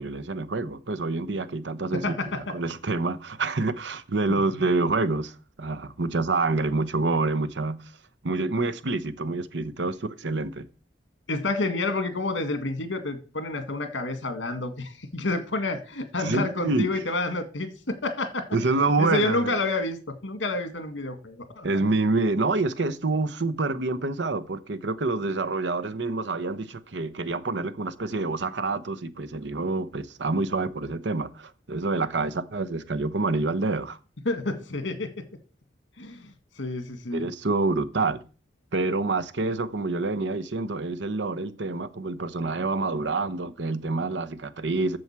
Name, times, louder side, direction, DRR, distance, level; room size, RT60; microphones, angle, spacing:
voice 1, 0.0-7.8 8.2-10.7 16.2-16.9 18.5-19.5 21.6-34.0 37.1-38.2 38.7-45.0, right 3 dB, 75° right, 0.9 m, -27 dB
voice 2, 1.9-2.4 4.3-4.6 11.3-18.5 19.0-21.7 34.3-35.1 36.0-36.3 36.6-37.2, left 2 dB, 85° left, 2.0 m, -29 dB
7.7 x 7.1 x 7.4 m
head